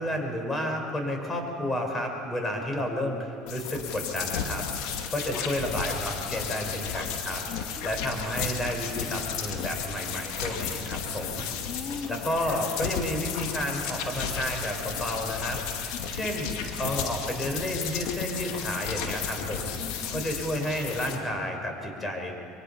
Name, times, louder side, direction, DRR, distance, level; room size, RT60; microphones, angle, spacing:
voice 1, 0.0-4.7 5.1-7.4 7.8-11.5 12.1-15.6 16.1-19.7 20.1-22.4, left 1 dB, 15° left, 2 dB, 5.3 m, -31 dB
sound 1, 3.5-21.2, left 7 dB, 70° left, 2.4 m, -34 dB
voice 2, 7.5-7.9 11.7-12.7 19.8-20.3, left 6 dB, 45° left, 1 dB, 2.1 m, -39 dB
24.5 x 23.0 x 5.8 m, 2.5 s
supercardioid pair, 90°, 0 cm